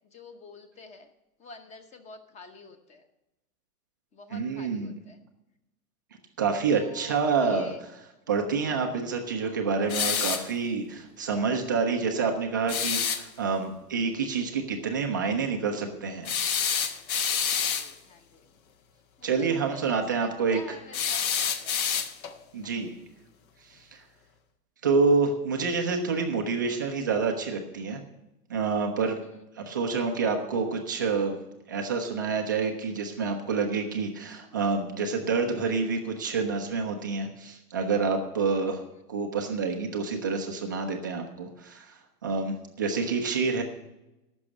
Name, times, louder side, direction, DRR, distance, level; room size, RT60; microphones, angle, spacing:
voice 1, 0.1-1.1 1.4-3.0 4.1-5.2 6.7-7.8 9.4-9.6 17.5-18.5 19.2-21.8 22.6-22.9 29.2-29.3 42.8-43.1, left 4 dB, 15° left, 8 dB, 0.9 m, -48 dB
voice 2, 4.3-4.9 6.4-7.9 8.3-16.3 19.2-20.6 22.5-22.9 23.7-24.0 24.8-28.0 28.5-29.2 29.6-31.4 31.7-38.8 39.1-43.6, right 4 dB, 15° right, 2 dB, 0.3 m, -28 dB
sound 1, 9.9-10.5 12.7-13.2 16.3-17.9 20.9-22.4, left 7 dB, 60° left, 1.2 m, -27 dB
14.5 x 6.1 x 6.4 m, 0.93 s
hypercardioid pair, 140°, 48 cm